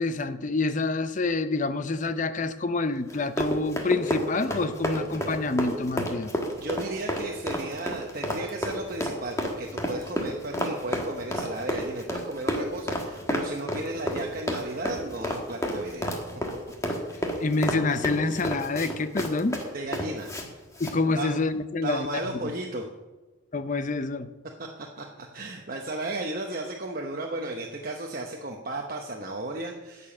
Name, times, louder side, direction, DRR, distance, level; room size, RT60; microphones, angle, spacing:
voice 1, 0.0-6.3 17.4-19.6 20.8-22.5 23.5-24.3, left 3 dB, 35° left, 11 dB, 0.6 m, -27 dB
Run, 3.1-20.5 20.7-21.0, equal, 15° left, 1.4 m, -30 dB
voice 2, 6.6-16.3 18.2-18.4 19.7-20.3 21.2-21.4 21.8-22.8 24.6-30.1, right 2 dB, 45° right, 1 dB, 0.9 m, -34 dB
11.0 x 6.9 x 8.6 m, 1.2 s
head